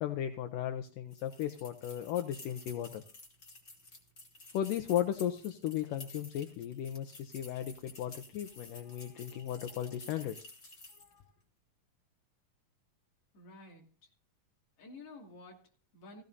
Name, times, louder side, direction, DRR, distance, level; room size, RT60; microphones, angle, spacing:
voice 1, 0.0-3.0 4.5-10.4 11.1-11.2, left 11 dB, 80° left, 6 dB, 2.3 m, -36 dB
sound 1, 1.1-11.2, left 2 dB, 25° left, 1.8 m, -53 dB
voice 2, 13.3-14.1 14.8-16.2, left 2 dB, 45° left, 0 dB, 3.3 m, -52 dB
15.5 x 15.5 x 2.7 m, 0.38 s
omnidirectional pair, 4.0 m